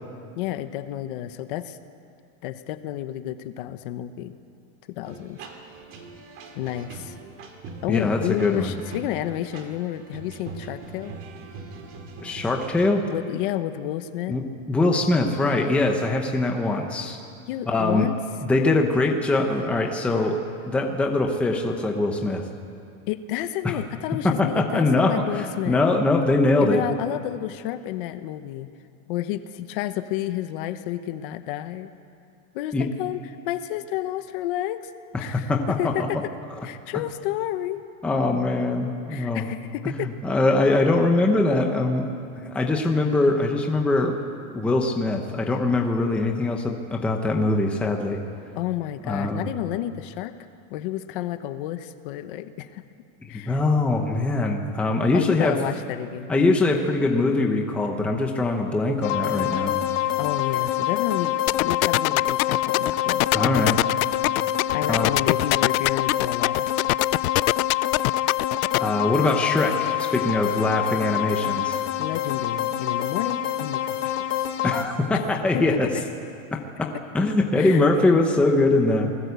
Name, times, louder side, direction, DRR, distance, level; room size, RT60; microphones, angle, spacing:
voice 1, 0.4-1.8 2.4-4.3 4.9-5.4 6.5-7.1 7.8-11.2 13.1-14.4 17.5-18.2 23.1-25.8 26.6-28.7 29.1-31.9 32.5-34.9 35.2-35.5 35.8-36.2 36.6-37.8 39.1-40.1 48.5-50.3 50.7-52.8 53.3-53.6 55.1-56.4 60.2-63.2 63.6-63.7 64.7-66.8 72.0-74.5 75.1-75.2 75.5-76.0 76.9-77.0 77.6-77.9, left 13 dB, 40° left, 10 dB, 1.0 m, -30 dB
sound 1, 5.0-12.9, right 3 dB, 30° right, 2.4 m, -41 dB
voice 2, 7.9-8.7 12.2-13.0 14.3-17.2 17.7-18.1 18.5-20.4 20.7-22.4 23.6-23.8 24.2-26.8 32.7-32.9 35.3-36.1 38.0-39.4 39.8-42.1 42.4-44.2 44.5-48.2 49.0-49.5 53.3-55.6 56.3-59.8 63.3-63.8 64.9-65.2 68.8-71.8 74.6-75.9 76.5-79.1, left 2 dB, 5° left, 2 dB, 0.8 m, -22 dB
sound 2, 59.0-74.8, left 12 dB, 60° left, 2.1 m, -26 dB
sound 3, 61.5-68.8, left 19 dB, 80° left, 0.5 m, -22 dB
28.0 x 19.5 x 8.2 m, 2.4 s
supercardioid pair, 180°, 42 cm